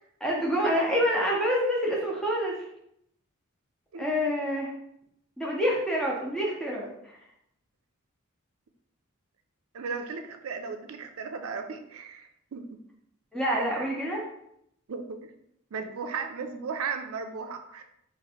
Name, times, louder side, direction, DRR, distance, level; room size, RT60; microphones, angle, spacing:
voice 1, 0.2-2.6 4.0-4.7 5.4-7.1 13.3-14.3, equal, 5° left, -4 dB, 0.7 m, -27 dB
voice 2, 9.7-12.7 13.5-13.6 14.9-15.3 15.7-17.8, right 5 dB, 75° right, 7 dB, 0.4 m, -36 dB
2.9 x 2.6 x 4.2 m, 0.75 s
head